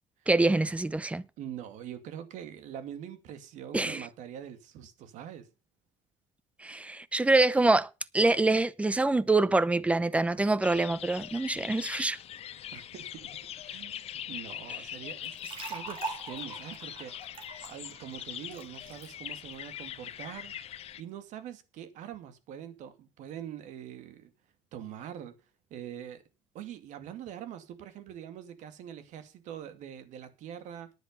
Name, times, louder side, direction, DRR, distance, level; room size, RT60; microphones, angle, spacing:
voice 1, 0.3-1.2 3.7-4.1 6.6-12.2, right 2 dB, 10° right, 0.7 m, -25 dB
voice 2, 1.4-5.5 12.7-13.3 13.6-17.1 17.7-20.5 21.0-24.3 24.7-25.4 25.7-26.2 26.5-30.9, right 10 dB, 70° right, 2.3 m, -44 dB
sound 1, 10.6-21.0, left 11 dB, 50° left, 1.0 m, -42 dB
sound 2, 15.2-19.1, right 4 dB, 45° right, 4.0 m, -42 dB
10.5 x 10.0 x 5.5 m
cardioid pair, 130°, 13 cm